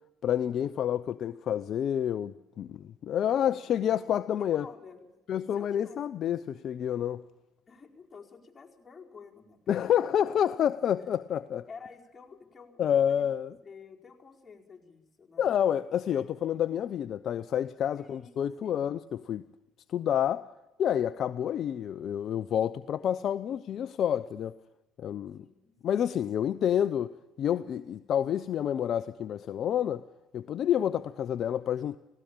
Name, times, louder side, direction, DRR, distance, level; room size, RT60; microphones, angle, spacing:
voice 1, 0.2-4.7 5.3-7.2 9.7-11.7 12.8-13.6 15.4-19.5 19.9-20.5 20.8-24.5 25.0-25.5 25.8-30.0 30.3-32.0, left 9 dB, 55° left, 0.6 m, -29 dB
voice 2, 4.4-5.1 5.5-6.0 7.7-10.1 11.7-13.3 13.6-15.5 18.0-18.3 18.6-18.9 25.4-26.1, left 5 dB, 25° left, 4.7 m, -51 dB
17.5 x 17.0 x 8.8 m
supercardioid pair, 70°, 0 cm